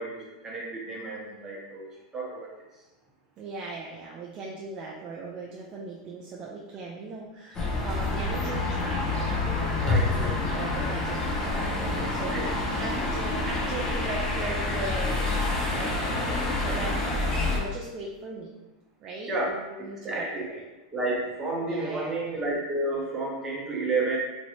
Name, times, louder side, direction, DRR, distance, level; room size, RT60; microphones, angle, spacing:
voice 1, 0.0-1.9 2.1-2.5 9.8-10.3 12.3-12.4 19.3-20.5 20.9-24.2, right 2 dB, 15° right, -4 dB, 0.8 m, -31 dB
voice 2, 3.4-18.5 19.0-20.6 21.6-22.2, right 3 dB, 35° right, -2 dB, 0.4 m, -39 dB
sound 1, 7.5-17.6, left 2 dB, 25° left, 0.7 m, -27 dB
3.1 x 2.6 x 2.8 m, 1.1 s
supercardioid pair, 140°, 3 cm